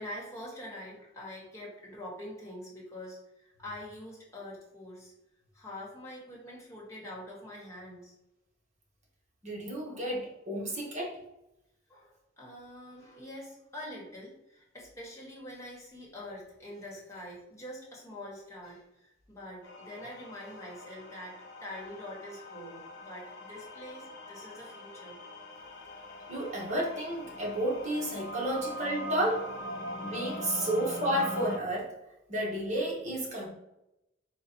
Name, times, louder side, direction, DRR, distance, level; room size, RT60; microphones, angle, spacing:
voice 1, 0.0-5.1 5.5-8.1 9.8-10.1 10.7-10.8 11.9-25.2, left 1 dB, 15° left, -5 dB, 1.4 m, -45 dB
voice 2, 9.4-11.2 13.1-13.2 26.3-29.5 30.0-32.0 32.3-33.5, right 1 dB, 40° right, -3 dB, 1.2 m, -32 dB
sound 1, 19.6-31.6, left 1 dB, 60° left, 0.8 m, -42 dB
4.1 x 2.4 x 4.3 m, 0.90 s
head